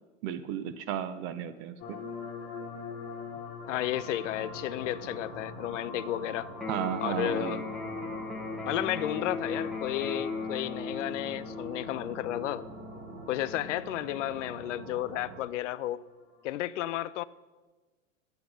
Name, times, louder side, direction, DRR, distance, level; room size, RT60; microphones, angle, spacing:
voice 1, 0.2-2.0 6.7-7.6, right 9 dB, 30° right, 12 dB, 0.4 m, -34 dB
sound 1, 1.8-16.4, left 5 dB, 35° left, 1.3 m, -46 dB
sound 2, 3.6-15.4, right 3 dB, 80° right, 2.1 m, -46 dB
voice 2, 3.7-6.5 7.0-7.6 8.7-12.6 13.3-16.0 16.4-17.2, left 14 dB, 65° left, 17 dB, 0.5 m, -32 dB
Electric guitar, 6.5-14.5, left 3 dB, ahead, 1.0 m, -38 dB
9.3 x 7.9 x 4.8 m, 1.2 s
hypercardioid pair, 115°, 40 cm